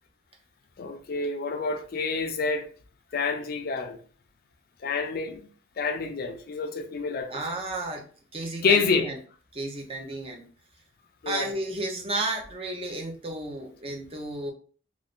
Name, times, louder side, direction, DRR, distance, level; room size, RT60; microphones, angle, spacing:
voice 1, 0.8-2.7 3.1-4.0 4.8-5.4 5.8-7.4 8.6-9.1 11.2-11.5, left 4 dB, 50° left, 0.4 m, -27 dB
voice 2, 7.3-8.0 8.3-9.2 9.5-10.5 11.3-14.5, right 2 dB, 30° right, 0.6 m, -32 dB
2.5 x 2.5 x 3.5 m
head